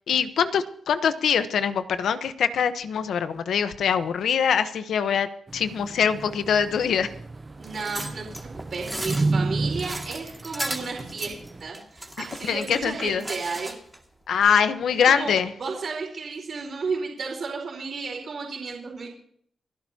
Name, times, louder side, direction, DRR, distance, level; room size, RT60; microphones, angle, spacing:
voice 1, 0.1-5.3 5.5-7.1 12.5-13.2 14.3-15.5, left 7 dB, 85° left, 11 dB, 1.0 m, -23 dB
sound 1, 5.5-11.7, right 3 dB, 30° right, 0.8 m, -32 dB
sound 2, 7.6-14.0 14.4-14.5, right 1 dB, 5° right, 2.2 m, -36 dB
voice 2, 7.6-8.3 8.5-13.7 15.1-15.3 15.6-19.1, right 4 dB, 55° right, -1 dB, 4.4 m, -33 dB
30.0 x 11.0 x 2.9 m, 0.63 s
cardioid pair, 100°, 0 cm